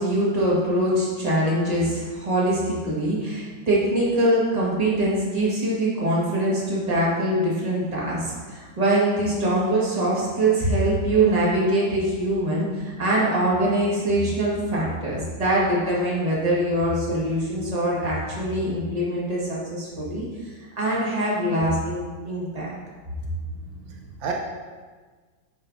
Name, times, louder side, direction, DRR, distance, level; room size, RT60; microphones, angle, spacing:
voice 1, 0.0-20.3 20.8-22.7, right 1 dB, 20° right, -7 dB, 1.6 m, -23 dB
voice 2, 23.7-24.3, right 6 dB, 75° right, 0 dB, 1.4 m, -33 dB
9.3 x 5.4 x 2.7 m, 1.4 s
omnidirectional pair, 2.2 m